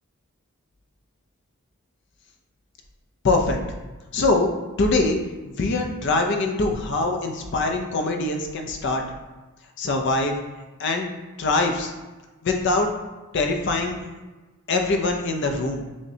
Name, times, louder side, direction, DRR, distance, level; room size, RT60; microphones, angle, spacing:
voice 1, 3.2-3.6 4.1-4.5 4.8-5.2 5.6-9.0 9.8-10.4 10.8-11.1 11.4-11.9 12.4-12.9 13.3-14.0 14.7-15.8, left 2 dB, 55° left, 3 dB, 0.5 m, -23 dB
6.2 x 2.1 x 2.7 m, 1.2 s
head